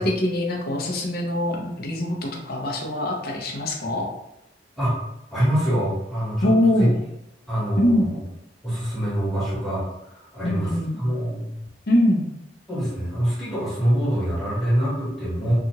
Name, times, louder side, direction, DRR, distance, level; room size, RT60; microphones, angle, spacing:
voice 1, 0.0-4.1 6.4-6.9 7.8-8.1 10.4-11.0 11.9-12.3, left 1 dB, 55° left, 0 dB, 0.6 m, -23 dB
voice 2, 5.3-6.9 7.5-8.2 8.6-11.5 12.7-15.5, equal, ahead, -10 dB, 1.3 m, -25 dB
2.8 x 2.4 x 2.7 m, 0.85 s
head